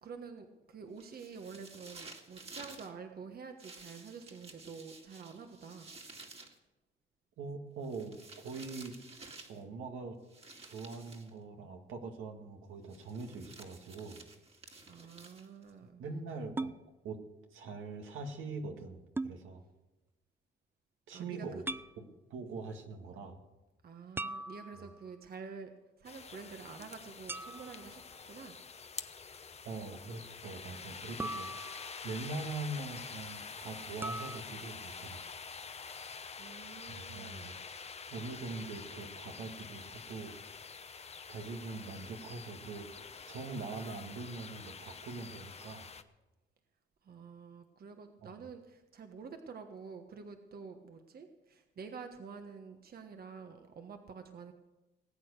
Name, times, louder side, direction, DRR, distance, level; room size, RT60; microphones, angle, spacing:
voice 1, 0.0-5.9 14.8-16.0 21.1-21.6 23.8-25.7 26.0-28.6 36.4-37.5 47.0-54.5, right 5 dB, 50° right, 6 dB, 1.3 m, -48 dB
sound 1, 1.0-2.9 3.6-6.6 7.8-9.6 10.3-11.3 12.9-15.7, right 3 dB, 30° right, 2.2 m, -52 dB
voice 2, 7.4-9.0 9.5-10.2 10.6-14.2 16.0-16.7 17.0-17.2 17.5-19.6 21.1-21.6 22.0-22.1 22.3-23.4 24.8-24.9 29.6-31.5 32.0-35.2 36.8-37.5 38.1-40.4 41.3-46.0 48.2-48.3, right 3 dB, 80° right, 3 dB, 2.1 m, -43 dB
sound 2, 16.6-16.8 19.2-19.4 21.7-21.9 24.2-25.1 27.3-27.9 31.2-32.1 34.0-34.4, right 2 dB, 10° right, 0.4 m, -39 dB
sound 3, 26.0-46.0, left 5 dB, 30° left, 0.9 m, -47 dB
19.5 x 8.7 x 6.7 m, 1.1 s
cardioid pair, 90°, 20 cm